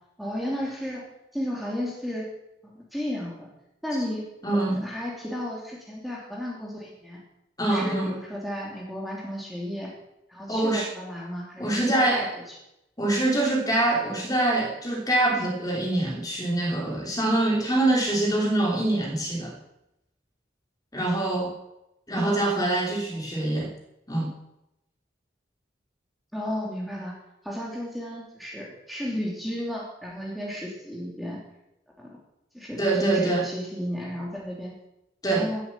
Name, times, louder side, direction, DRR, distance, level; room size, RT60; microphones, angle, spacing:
voice 1, 0.2-1.1 1.3-2.3 2.6-3.5 3.8-7.2 7.7-9.9 10.3-12.5 15.4-15.5 22.2-22.4 26.3-27.2 27.4-31.4 32.0-32.2 32.5-34.7 35.3-35.6, equal, ahead, -3 dB, 3.0 m, -33 dB
voice 2, 4.4-4.8 7.6-8.1 10.5-10.9 11.6-12.3 13.0-19.5 20.9-21.5 22.1-23.7 24.1-24.3 32.8-33.4 35.2-35.5, right 2 dB, 20° left, -1 dB, 3.3 m, -24 dB
17.5 x 8.4 x 7.5 m, 0.86 s
head